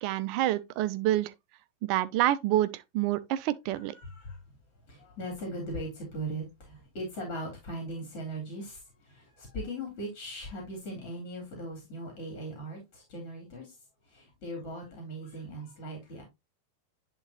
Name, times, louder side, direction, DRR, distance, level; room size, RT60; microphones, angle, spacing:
voice 1, 0.0-1.3 1.8-3.9, right 14 dB, 45° right, 0.6 m, -27 dB
voice 2, 3.7-4.4 4.9-13.8 14.0-16.2, right 1 dB, 40° left, 3.4 m, -39 dB
10.5 x 3.8 x 2.9 m
figure-of-eight pair, 90°, 0 cm